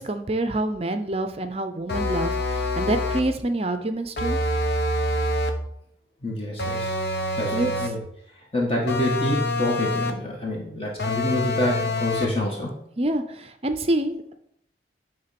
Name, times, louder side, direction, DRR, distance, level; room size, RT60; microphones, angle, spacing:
voice 1, 0.0-4.4 7.5-7.7 13.0-14.3, right 1 dB, 30° right, 8 dB, 0.5 m, -27 dB
sound 1, 1.9-3.4 4.2-5.7 6.6-8.1 8.9-10.3 11.0-12.4, left 1 dB, 60° left, 0.9 m, -26 dB
voice 2, 6.2-7.0 7.4-8.0 8.5-12.7, left 1 dB, 30° left, -2 dB, 1.6 m, -27 dB
10.0 x 3.6 x 5.9 m, 0.72 s
head